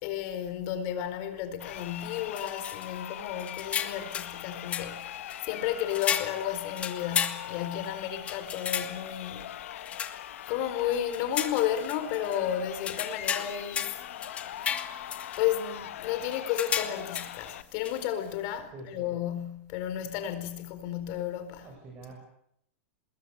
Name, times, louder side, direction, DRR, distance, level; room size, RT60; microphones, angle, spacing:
voice 1, 0.0-9.5 10.5-14.0 15.4-21.7, left 10 dB, 40° left, 4.5 m, -32 dB
Crowd, 1.5-17.6, left 12 dB, 75° left, 1.5 m, -41 dB
sound 1, 1.7-1.8 2.4-3.0 3.4-4.4 4.7-5.4 5.9-7.9 8.3-9.2 9.9-10.5 10.9-12.4 12.8-15.6 16.3-17.5 17.8-18.0, left 8 dB, 15° left, 1.7 m, -34 dB
voice 2, 18.7-19.1 21.6-22.1, right 2 dB, 20° right, 7.4 m, -45 dB
27.0 x 21.0 x 8.2 m
supercardioid pair, 165°, 7 cm